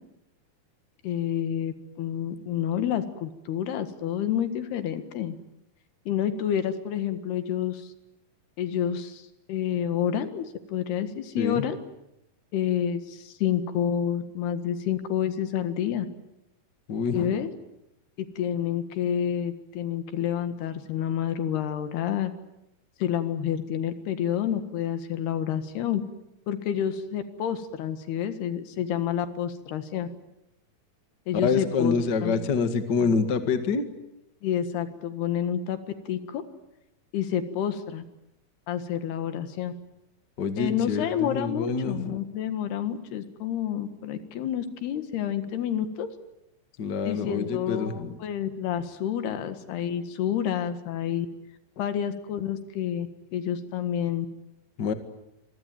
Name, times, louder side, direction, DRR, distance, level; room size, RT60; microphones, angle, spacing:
voice 1, 1.0-5.4 6.1-7.9 8.6-11.8 12.5-16.1 17.1-17.5 18.4-22.3 23.0-26.0 26.5-30.1 31.3-32.0 32.2-32.4 34.4-35.8 36.1-36.4 37.1-38.0 38.7-39.7 40.6-46.1 47.1-51.3 51.8-54.3, left 9 dB, 80° left, 10 dB, 3.8 m, -29 dB
voice 2, 16.9-17.4 31.3-33.8 40.4-42.2 46.8-48.2 54.8-54.9, left 5 dB, 40° left, 9 dB, 1.6 m, -27 dB
26.5 x 23.0 x 9.4 m, 0.86 s
omnidirectional pair, 4.6 m